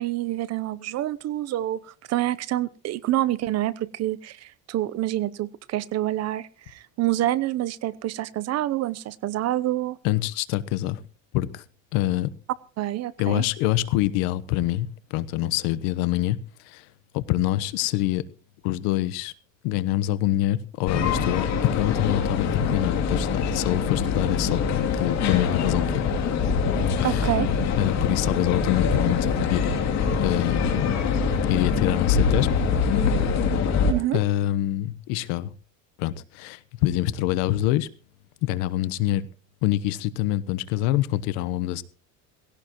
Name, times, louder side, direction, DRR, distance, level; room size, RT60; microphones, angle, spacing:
voice 1, 0.0-10.0 12.8-13.4 27.0-27.5 33.9-34.2, right 14 dB, 40° right, 0.8 m, -27 dB
voice 2, 10.0-11.0 11.3-11.6 11.9-12.3 13.2-16.9 17.1-18.2 18.6-19.3 19.6-26.1 27.0-27.3 27.8-29.7 30.2-30.9 31.5-32.7 34.1-35.5 36.0-37.9 38.4-39.3 39.6-41.8, left 14 dB, 75° left, 1.2 m, -25 dB
sound 1, 20.9-33.9, left 6 dB, 45° left, 3.0 m, -24 dB
18.5 x 17.0 x 3.1 m
cardioid pair, 140°, 38 cm